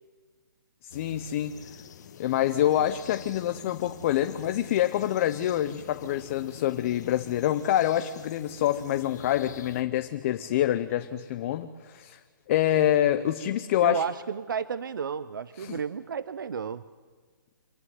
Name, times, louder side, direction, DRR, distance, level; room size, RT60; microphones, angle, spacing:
voice 1, 0.8-1.6 2.2-12.2 12.5-14.0 15.6-15.8, left 12 dB, 40° left, 10 dB, 0.8 m, -26 dB
sound 1, 0.9-9.8, left 7 dB, 55° left, 1.4 m, -46 dB
voice 2, 13.8-16.8, right 6 dB, 80° right, 16 dB, 0.6 m, -32 dB
26.0 x 11.0 x 9.5 m, 1.5 s
hypercardioid pair, 145°, 11 cm